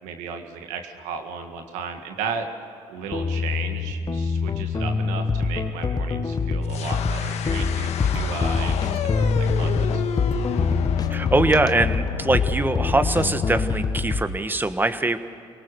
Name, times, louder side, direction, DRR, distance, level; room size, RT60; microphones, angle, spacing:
voice 1, 0.0-2.5 2.9-10.0, right 6 dB, 90° right, 5 dB, 1.9 m, -35 dB
sound 1, 3.1-14.3, left 4 dB, 35° left, 1.1 m, -25 dB
sound 2, 6.6-13.5, left 8 dB, 70° left, 1.3 m, -33 dB
voice 2, 11.1-15.2, right 2 dB, 15° right, 10 dB, 1.3 m, -22 dB
24.0 x 18.5 x 6.9 m, 2.6 s
supercardioid pair, 70°, 12 cm